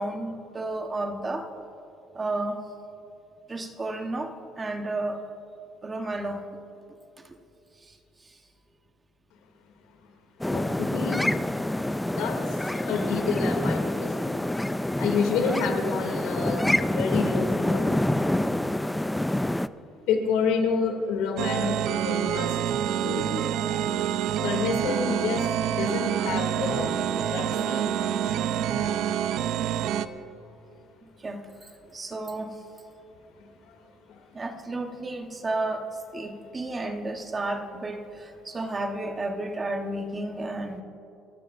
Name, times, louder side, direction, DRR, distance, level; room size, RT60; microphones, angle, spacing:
voice 1, 0.0-1.5 2.1-2.6 3.5-5.2 5.8-6.4 7.2-7.4 7.8-8.4 18.6-18.8 31.0-32.6 34.3-40.8, right 2 dB, 20° right, 5 dB, 1.1 m, -32 dB
voice 2, 10.4-11.2 12.0-14.4 14.9-17.9 20.1-22.6 22.9-23.3 24.4-29.0 33.4-33.8 34.1-34.2, left 5 dB, 85° left, 3 dB, 2.6 m, -29 dB
sound 1, 10.4-19.7, left 1 dB, 5° left, 0.3 m, -27 dB
The Song that Starts with an Ending, 21.4-30.1, right 10 dB, 65° right, 0.6 m, -27 dB
29.5 x 14.0 x 2.6 m, 2.9 s
cardioid pair, 140°, 0 cm